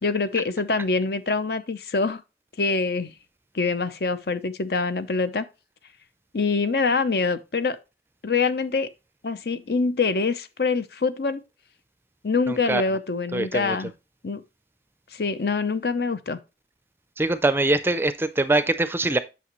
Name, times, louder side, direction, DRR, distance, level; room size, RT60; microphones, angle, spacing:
voice 1, 0.0-2.2 2.6-3.1 3.5-5.5 6.3-7.8 8.2-8.9 9.2-11.4 12.2-13.9 14.2-14.4 15.1-16.4, left 4 dB, 60° left, 0.7 m, -25 dB
voice 2, 12.5-12.8 13.3-13.8 17.2-19.2, right 2 dB, 15° right, 0.5 m, -23 dB
8.4 x 6.1 x 3.0 m
head